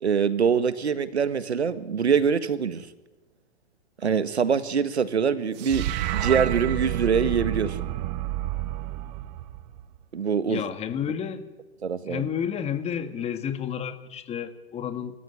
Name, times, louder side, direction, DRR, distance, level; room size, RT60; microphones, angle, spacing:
voice 1, 0.0-2.9 4.0-7.9 10.1-10.6 11.8-12.2, right 6 dB, 90° right, 13 dB, 1.7 m, -24 dB
sound 1, 5.6-10.0, right 14 dB, 40° right, 1.3 m, -29 dB
voice 2, 10.5-11.5 12.1-15.2, left 8 dB, 20° left, 10 dB, 1.8 m, -31 dB
29.0 x 14.5 x 9.9 m, 1.1 s
hypercardioid pair, 130°, 32 cm